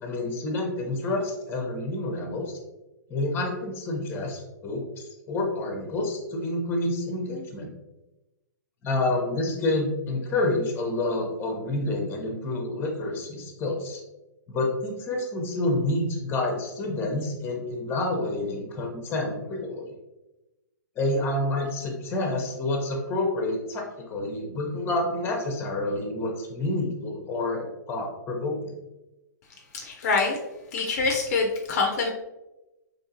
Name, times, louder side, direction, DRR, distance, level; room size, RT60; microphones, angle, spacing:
voice 1, 0.0-2.6 3.1-4.8 5.3-7.7 8.8-14.0 14.5-19.9 21.0-28.7, left 2 dB, 20° left, 1 dB, 0.9 m, -28 dB
voice 2, 29.7-30.4 30.7-32.1, left 4 dB, 50° left, 1 dB, 0.6 m, -25 dB
3.6 x 3.0 x 2.8 m, 1.0 s
figure-of-eight pair, 120°, 10 cm